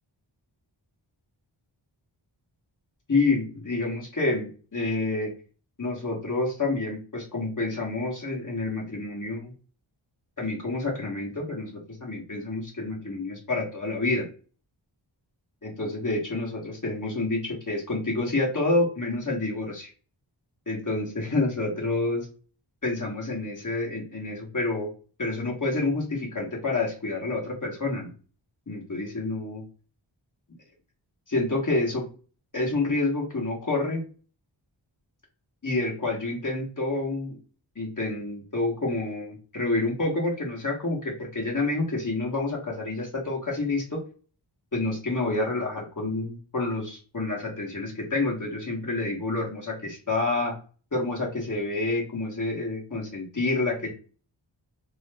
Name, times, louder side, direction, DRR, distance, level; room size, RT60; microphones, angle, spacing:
voice 1, 3.1-5.3 5.8-9.5 10.4-11.7 12.0-14.3 15.6-19.9 20.7-22.3 22.8-24.9 25.2-28.1 28.7-29.6 31.3-32.0 32.5-34.0 35.6-37.4 37.7-44.0 44.7-50.5 50.9-53.9, left 2 dB, 40° left, -2 dB, 1.3 m, -28 dB
3.0 x 2.0 x 3.3 m, 0.38 s
wide cardioid pair, 55°, 47 cm